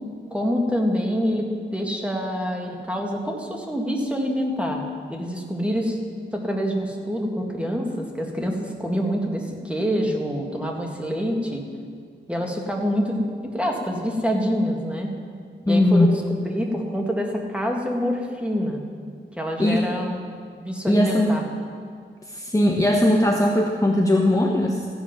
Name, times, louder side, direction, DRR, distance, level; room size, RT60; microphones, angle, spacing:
voice 1, 0.3-4.8 5.1-6.0 6.3-11.6 12.3-13.2 13.5-15.1 15.7-18.8 19.4-20.3 20.6-21.4, equal, 5° right, 0 dB, 1.9 m, -26 dB
voice 2, 15.6-16.1 19.6-20.0 20.9-21.3 22.3-24.9, left 1 dB, 15° left, 0 dB, 1.1 m, -19 dB
15.0 x 8.0 x 5.8 m, 2.1 s
wide cardioid pair, 75°, 20 cm